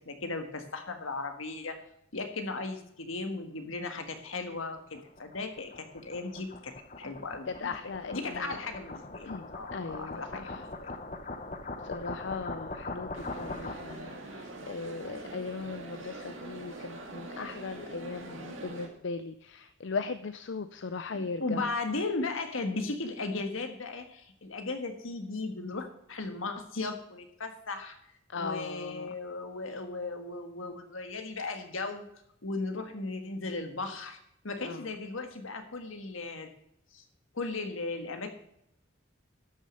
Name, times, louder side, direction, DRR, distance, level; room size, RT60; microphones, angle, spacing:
voice 1, 0.0-1.8 2.1-6.7 7.0-7.7 8.1-10.9 21.1-28.0 28.3-32.1 32.4-34.2 34.4-36.5 36.9-37.0 37.3-38.3, left 3 dB, 80° left, 6 dB, 1.7 m, -36 dB
sound 1, 4.1-14.1, left 2 dB, 35° left, 0.9 m, -42 dB
voice 2, 7.6-8.4 9.2-10.2 11.9-21.6 28.3-29.1 34.6-34.8, left 4 dB, 60° left, 12 dB, 0.5 m, -38 dB
sound 2, 13.1-18.9, right 2 dB, 75° right, 2.0 m, -43 dB
12.5 x 6.5 x 6.6 m, 0.74 s
head